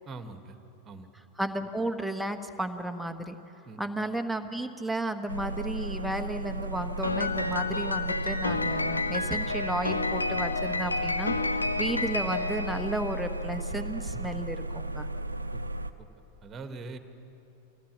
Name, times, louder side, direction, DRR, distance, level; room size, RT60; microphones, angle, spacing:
voice 1, 0.1-0.6 0.8-1.1 3.6-3.8 15.5-15.6 16.4-17.0, right 3 dB, 25° right, 8 dB, 1.6 m, -42 dB
voice 2, 1.4-3.3 3.8-15.1, right 1 dB, ahead, 6 dB, 1.3 m, -33 dB
sound 1, 5.3-15.9, right 1 dB, 80° right, 0.8 m, -35 dB
Piano, 7.0-13.5, left 3 dB, 80° left, 0.9 m, -30 dB
24.5 x 16.5 x 7.4 m, 3.0 s
figure-of-eight pair, 90°, 0 cm